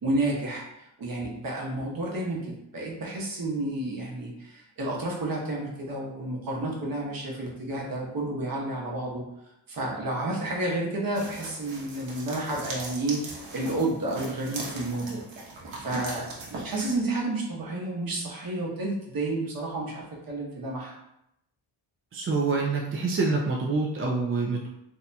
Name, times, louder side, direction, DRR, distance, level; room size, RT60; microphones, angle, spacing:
voice 1, 0.0-2.4 2.7-9.2 9.7-15.2 15.8-20.9, right 2 dB, 50° right, -2 dB, 1.0 m, -31 dB
sound 1, 11.1-17.0, right 2 dB, 80° right, 1.0 m, -39 dB
voice 2, 22.1-24.7, right 3 dB, 30° right, -2 dB, 0.4 m, -26 dB
4.0 x 2.8 x 2.2 m, 0.82 s
cardioid pair, 110°, 45 cm